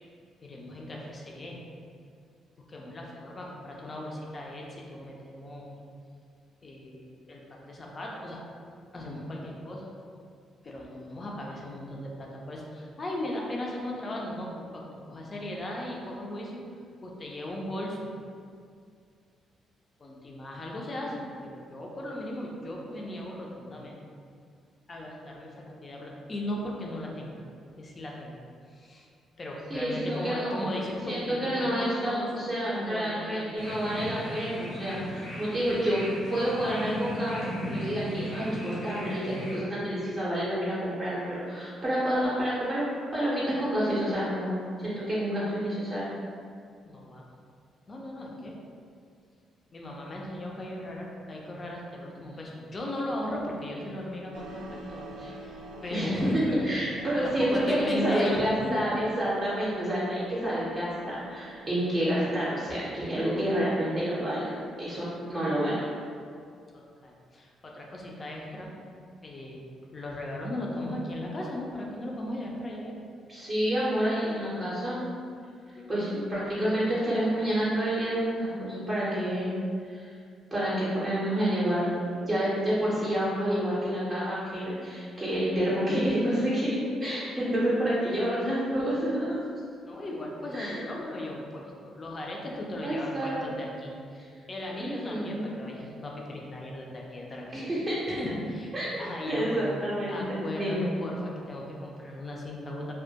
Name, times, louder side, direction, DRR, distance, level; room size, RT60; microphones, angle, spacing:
voice 1, 0.4-1.6 2.7-5.7 6.6-8.4 8.9-9.9 10.6-16.6 17.0-18.1 20.0-24.0 24.9-27.4 27.8-28.4 28.7-29.1 29.4-33.5 46.8-47.2 47.9-48.6 49.7-55.1 55.5-56.7 57.2-58.8 66.7-68.7 69.2-69.6 69.9-72.9 75.7-76.1 87.5-87.7 89.8-97.6 98.1-98.7 99.0-99.6 100.1-102.9, left 1 dB, 35° left, -2 dB, 0.4 m, -37 dB
voice 2, 29.7-30.6 31.1-36.0 36.3-42.8 43.1-44.5 44.8-46.0 55.2-55.3 55.9-65.8 73.3-75.0 75.9-79.5 79.9-80.1 80.5-81.9 82.3-89.3 90.5-90.8 92.8-93.4 94.8-95.5 97.5-98.2 98.7-100.8, equal, 30° right, -9 dB, 0.6 m, -29 dB
sound 1, 33.6-39.6, equal, 85° left, 0.6 m, -37 dB
sound 2, 54.3-65.1, right 2 dB, 90° right, 0.3 m, -48 dB
2.2 x 2.1 x 2.7 m, 2.2 s
cardioid pair, 90°, 0 cm